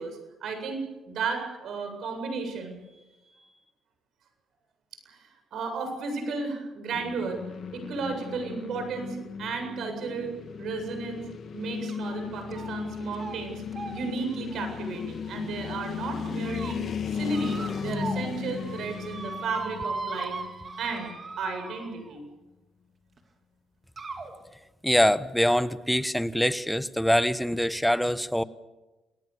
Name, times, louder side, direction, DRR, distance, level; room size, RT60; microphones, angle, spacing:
voice 1, 0.0-2.9 3.3-3.5 5.1-7.4 7.7-10.3 10.6-11.2 11.5-20.4 20.8-22.2, right 4 dB, 70° right, 5 dB, 7.7 m, -34 dB
sound 1, 6.9-21.1, left 6 dB, 55° left, 2.4 m, -36 dB
sound 2, 11.9-12.2 12.5-12.9 13.1-13.4 13.7-15.7 16.2-16.7 17.3-18.3 18.6-22.2 23.2-23.3 24.0-24.3, right 4 dB, 40° right, 3.6 m, -39 dB
voice 2, 24.8-28.4, equal, 5° left, 14 dB, 1.1 m, -24 dB
28.0 x 19.5 x 7.0 m, 1.1 s
cardioid pair, 90°, 0 cm